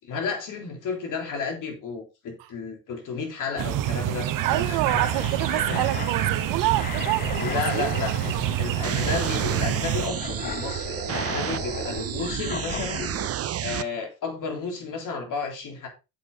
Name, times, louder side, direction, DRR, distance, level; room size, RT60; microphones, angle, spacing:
voice 1, 0.0-4.8 5.1-5.2 5.7-5.9 6.6-6.7 7.4-8.3 8.6-13.1 13.6-15.9, left 5 dB, 50° left, 3.7 m, -32 dB
sound 1, 3.6-10.1, right 12 dB, 55° right, 1.1 m, -27 dB
voice 2, 4.4-8.9, right 21 dB, 85° right, 0.7 m, -28 dB
sound 2, 4.8-13.3, left 8 dB, 25° left, 0.4 m, -36 dB
sound 3, 8.8-13.8, right 11 dB, 40° right, 0.7 m, -31 dB
8.7 x 7.6 x 3.9 m
cardioid pair, 115°, 39 cm